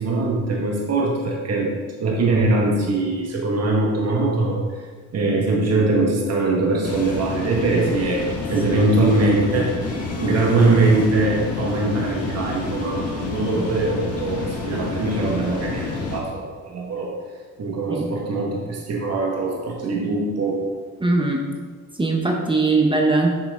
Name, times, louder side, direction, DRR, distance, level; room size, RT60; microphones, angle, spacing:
voice 1, 0.0-1.7 2.0-4.8 5.1-8.2 8.5-9.7 10.2-17.1 17.6-20.6, right 2 dB, 55° right, -2 dB, 1.7 m, -22 dB
sound 1, 6.8-16.2, left 3 dB, 55° left, 1.6 m, -28 dB
voice 2, 21.0-21.4 21.9-23.3, right 3 dB, 15° right, 1 dB, 1.0 m, -20 dB
7.8 x 6.1 x 3.7 m, 1.5 s
cardioid pair, 90°, 30 cm